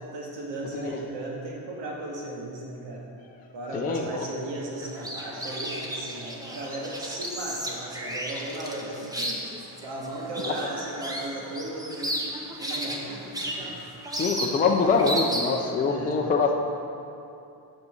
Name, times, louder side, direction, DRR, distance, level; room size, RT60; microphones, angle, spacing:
voice 1, 0.1-3.0 3.5-9.5 9.8-13.8 15.9-16.2, right 1 dB, 80° right, -3 dB, 2.1 m, -36 dB
voice 2, 3.5-4.3 14.2-16.7, left 4 dB, 20° left, 1 dB, 0.5 m, -24 dB
sound 1, 4.8-15.7, equal, 10° right, 0.8 m, -34 dB
8.1 x 6.2 x 6.9 m, 2.6 s
cardioid pair, 170°, 43 cm